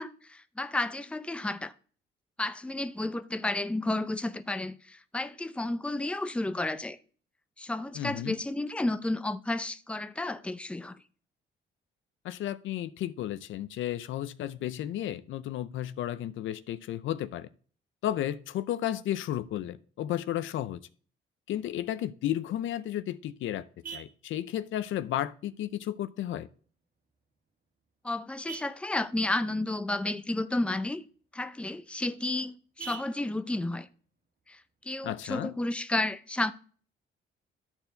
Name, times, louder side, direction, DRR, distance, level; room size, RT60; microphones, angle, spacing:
voice 1, 0.0-1.7 2.4-7.0 7.6-11.0 28.0-31.0 31.3-33.9 34.5-34.6 34.8-36.5, left 2 dB, 5° left, 0.6 m, -32 dB
voice 2, 7.9-8.4 12.2-17.5 18.0-20.8 21.5-23.7 23.9-26.5 35.0-35.5, left 12 dB, 75° left, 0.6 m, -33 dB
Vehicle horn car horn honking, 22.6-35.6, right 6 dB, 45° right, 1.8 m, -52 dB
12.5 x 4.5 x 3.9 m
cardioid pair, 90°, 20 cm